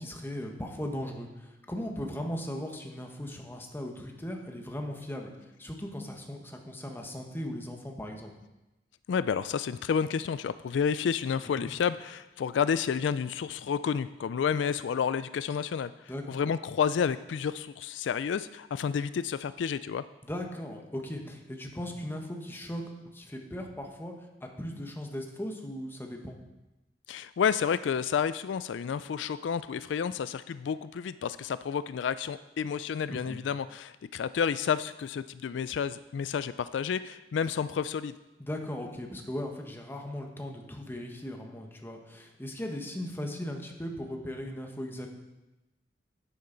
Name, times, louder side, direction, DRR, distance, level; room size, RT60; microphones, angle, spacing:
voice 1, 0.0-5.3 5.6-8.3 11.5-11.7 16.1-16.4 20.2-22.8 23.1-24.1 24.4-26.4 33.1-33.4 38.4-45.1, left 1 dB, 10° left, 2 dB, 1.2 m, -38 dB
voice 2, 9.1-20.0 27.1-38.1, left 7 dB, 85° left, 14 dB, 0.3 m, -30 dB
10.0 x 9.6 x 3.9 m, 1.0 s
head